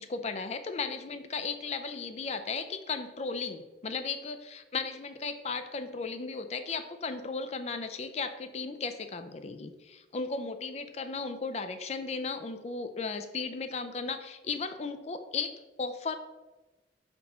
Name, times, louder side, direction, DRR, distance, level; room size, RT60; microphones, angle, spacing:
voice 1, 0.0-16.2, left 4 dB, 35° left, 10 dB, 0.4 m, -35 dB
4.4 x 4.2 x 5.5 m, 1.1 s
head